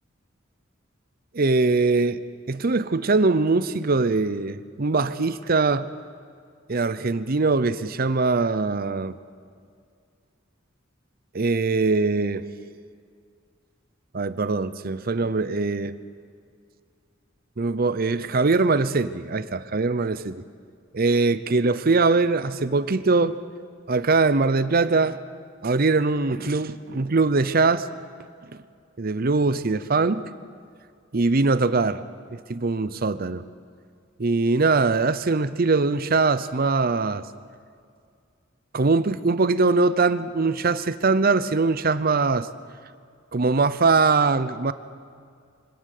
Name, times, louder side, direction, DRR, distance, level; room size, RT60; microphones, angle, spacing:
voice 1, 1.3-2.2 2.5-5.9 6.7-9.2 11.3-12.4 14.1-15.9 17.6-20.4 20.9-23.4 23.9-25.2 25.6-27.9 29.0-30.3 31.1-32.0 32.3-33.4 34.2-37.2 38.7-42.5 43.3-44.7, right 3 dB, 50° right, 14 dB, 0.7 m, -22 dB
25.0 x 17.0 x 6.7 m, 2.2 s
head